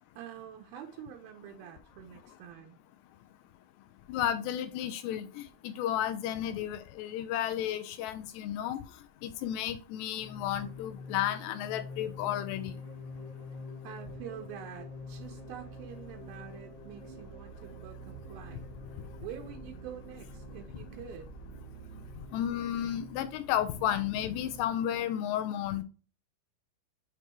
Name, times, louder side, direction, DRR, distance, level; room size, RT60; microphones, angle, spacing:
voice 1, 0.2-2.8 13.8-18.7 19.2-21.4, right 9 dB, 90° right, 2.1 m, -46 dB
voice 2, 4.1-5.3 5.6-8.8 9.2-12.7 22.3-25.8, left 11 dB, 85° left, 2.5 m, -32 dB
sound 1, 10.1-24.6, left 1 dB, 60° right, 0.7 m, -46 dB
7.9 x 3.0 x 4.4 m
omnidirectional pair, 5.2 m